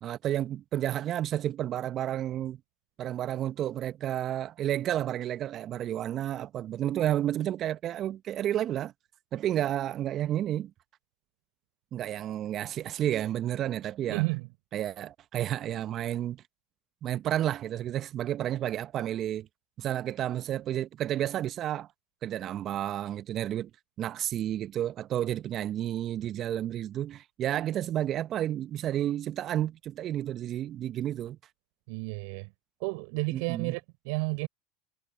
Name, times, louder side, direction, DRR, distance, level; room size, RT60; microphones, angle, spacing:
voice 1, 0.0-2.6 3.0-8.9 9.3-10.7 11.9-14.2 14.7-16.4 17.0-19.5 19.8-21.9 22.2-23.7 24.0-31.4 33.3-33.7, right 12 dB, 45° right, 1.1 m, -31 dB
voice 2, 14.1-14.5 31.9-32.5 32.8-34.5, right 32 dB, 60° right, 4.9 m, -31 dB
hypercardioid pair, 80°, 0 cm